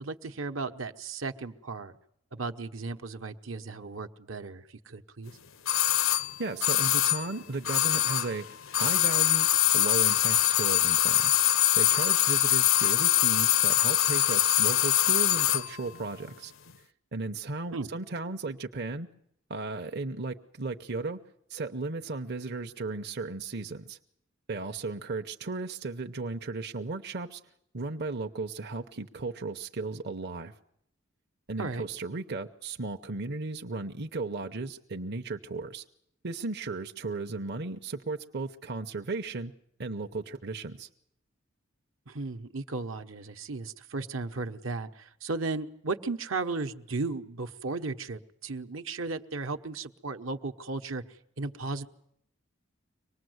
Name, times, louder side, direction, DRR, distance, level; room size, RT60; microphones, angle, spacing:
voice 1, 0.0-1.9 2.3-5.4 17.7-17.9 31.6-31.9 42.1-51.0 51.4-51.9, right 3 dB, 75° right, 6 dB, 1.1 m, -35 dB
sound 1, 5.7-8.4 8.7-15.7 15.9-16.0, left 13 dB, 90° left, 0.9 m, -24 dB
voice 2, 6.1-9.5 9.7-11.3 11.8-16.5 17.1-19.1 19.5-21.2 21.5-24.0 24.5-27.4 27.7-30.5 31.5-35.8 36.2-39.5 39.8-40.9, right 3 dB, 55° right, 5 dB, 0.9 m, -35 dB
24.5 x 19.5 x 8.0 m, 0.72 s
head